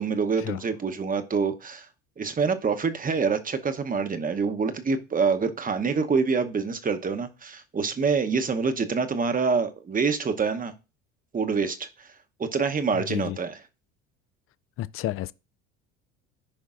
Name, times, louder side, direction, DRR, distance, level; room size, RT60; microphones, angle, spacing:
voice 1, 0.0-1.9 2.2-10.7 11.3-11.9 12.4-13.6, right 5 dB, 25° right, 0.9 m, -26 dB
voice 2, 12.9-13.4 14.8-15.3, left 13 dB, 40° left, 0.4 m, -31 dB
13.0 x 5.1 x 2.5 m
hypercardioid pair, 75°, 35 cm